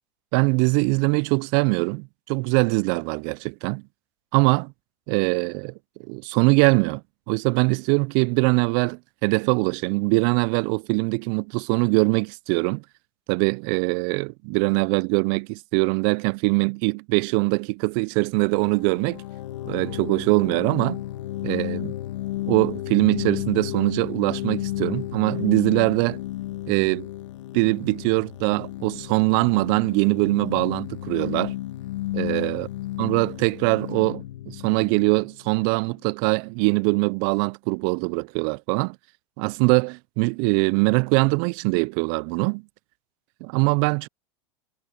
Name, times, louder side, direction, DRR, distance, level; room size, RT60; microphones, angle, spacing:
voice 1, 0.3-3.8 4.3-4.7 5.1-5.7 6.0-12.8 13.3-19.2 19.7-21.0 21.4-21.9 22.5-26.2 26.7-27.1 27.5-31.5 32.1-32.7 33.0-39.0 39.4-42.6 43.4-44.1, right 33 dB, 50° right, 0.4 m, -22 dB
sound 1, 18.3-35.9, left 15 dB, 75° left, 1.5 m, -33 dB
hypercardioid pair, 105°, 16 cm